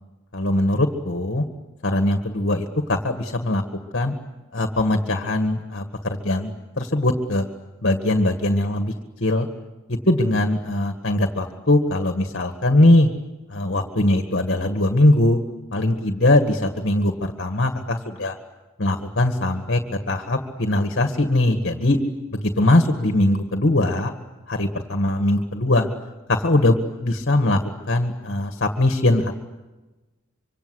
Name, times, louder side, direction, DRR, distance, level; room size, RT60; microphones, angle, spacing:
voice 1, 0.3-1.4 1.8-3.6 3.9-4.1 4.5-7.5 7.8-8.9 9.2-9.5 9.9-13.1 13.5-15.4 15.7-18.4 18.8-19.8 20.1-22.0 22.3-24.1 24.5-25.9 26.3-27.6 27.9-29.4, left 1 dB, 50° left, 6 dB, 1.9 m, -21 dB
25.5 x 25.0 x 8.2 m, 1.1 s
head